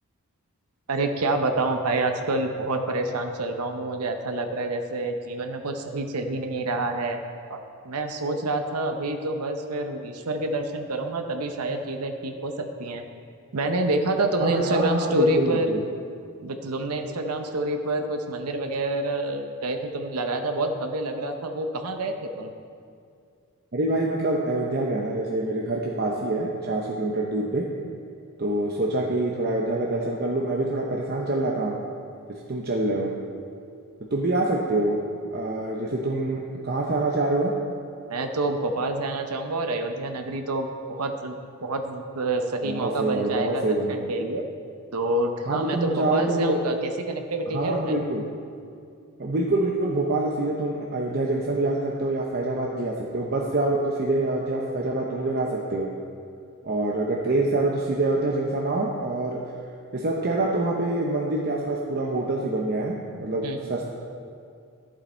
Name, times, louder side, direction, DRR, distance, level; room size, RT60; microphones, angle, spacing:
voice 1, 0.9-7.2 7.5-13.0 13.5-15.7 16.4-22.5 38.1-44.4 44.9-47.9 63.4-63.7, right 2 dB, 90° right, 5 dB, 0.8 m, -27 dB
voice 2, 14.4-15.8 23.7-27.7 28.4-31.7 32.5-33.1 34.1-35.0 35.3-37.5 42.6-44.1 45.5-46.6 47.5-48.2 49.2-55.9 56.6-59.4 59.9-63.9, right 2 dB, 45° right, -2 dB, 0.7 m, -26 dB
11.5 x 7.3 x 4.4 m, 2.3 s
head